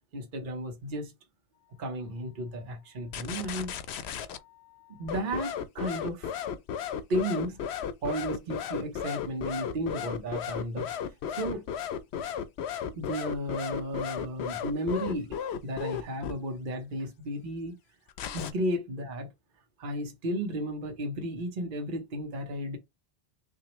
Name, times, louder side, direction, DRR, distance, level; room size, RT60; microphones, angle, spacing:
voice 1, 0.1-1.1 1.8-3.7 4.9-6.4 7.1-7.6 8.0-11.7 12.8-15.4 15.6-17.7 18.3-19.3 19.8-22.8, right 1 dB, 50° right, 1.0 m, -34 dB
sound 1, 3.1-4.4 5.1-16.3 18.1-18.5, left 8 dB, 75° left, 0.9 m, -34 dB
5.9 x 2.6 x 3.0 m
omnidirectional pair, 1.1 m